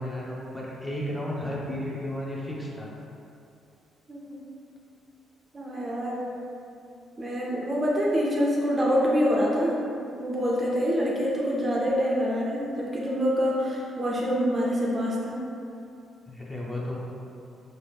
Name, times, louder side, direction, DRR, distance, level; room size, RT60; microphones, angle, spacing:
voice 1, 0.0-2.9 16.3-17.0, left 1 dB, 10° left, -5 dB, 0.7 m, -33 dB
voice 2, 4.1-4.4 5.5-6.3 7.2-9.8 10.1-15.5, equal, 30° right, -4 dB, 0.6 m, -26 dB
3.0 x 2.8 x 3.5 m, 2.6 s
cardioid pair, 90°, 0 cm